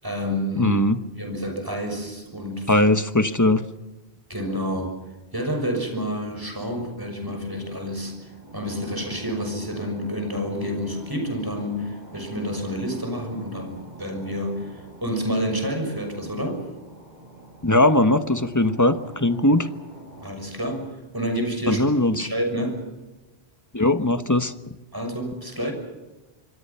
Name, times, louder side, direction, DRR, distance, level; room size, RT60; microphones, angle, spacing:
voice 1, 0.0-0.8 1.2-2.9 4.3-4.9 5.3-8.1 8.5-16.7 20.2-21.8 22.2-22.8 24.9-25.7, equal, 20° right, 4 dB, 6.3 m, -29 dB
voice 2, 0.6-1.0 2.7-3.6 17.6-19.7 21.7-22.3 23.7-24.5, left 2 dB, 20° left, 10 dB, 1.2 m, -20 dB
sound 1, 6.6-20.3, right 2 dB, 45° right, 7.4 m, -45 dB
27.0 x 22.5 x 5.7 m, 1.1 s
omnidirectional pair, 1.0 m